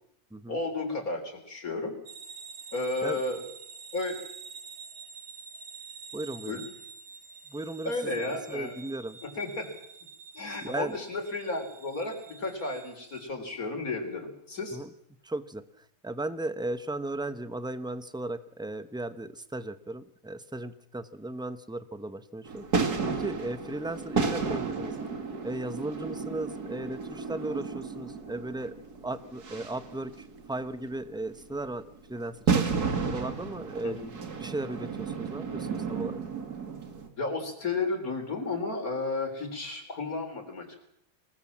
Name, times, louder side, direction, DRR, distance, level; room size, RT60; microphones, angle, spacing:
voice 1, 0.5-1.9 2.7-3.4 3.9-4.2 6.4-6.6 7.8-8.7 9.2-9.7 10.3-14.8 33.8-34.1 37.2-40.8, left 3 dB, 60° left, 5 dB, 4.5 m, -33 dB
sound 1, 2.1-13.3, right 5 dB, 55° right, 2.2 m, -47 dB
voice 2, 6.1-6.6 7.5-8.2 8.5-9.2 10.6-11.0 14.7-14.9 15.2-15.6 16.0-24.9 25.4-28.7 29.0-31.8 32.1-34.0 34.4-36.2, right 2 dB, 5° right, 12 dB, 0.8 m, -36 dB
sound 2, 22.5-37.1, right 5 dB, 70° right, 2.7 m, -32 dB
26.5 x 19.0 x 7.4 m, 0.77 s
omnidirectional pair, 1.7 m